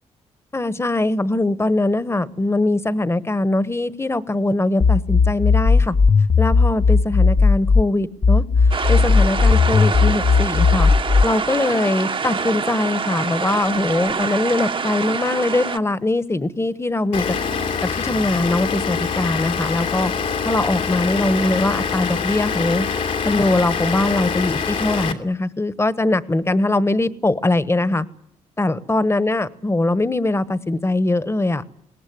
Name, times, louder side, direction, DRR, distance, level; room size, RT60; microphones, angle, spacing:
voice 1, 0.5-5.9 6.4-10.9 11.2-17.2 17.9-20.1 20.4-22.9 23.2-28.1 28.6-31.6, left 2 dB, 20° left, 15 dB, 1.3 m, -21 dB
sound 1, 4.8-7.8 8.2-11.3, left 4 dB, 35° left, 0.8 m, -15 dB
sound 2, 8.7-15.8, right 5 dB, 40° right, 1.0 m, -26 dB
Vehicle / Engine, 17.1-25.1, left 6 dB, 70° left, 3.0 m, -24 dB
21.5 x 18.0 x 9.5 m, 0.80 s
supercardioid pair, 65°, 13 cm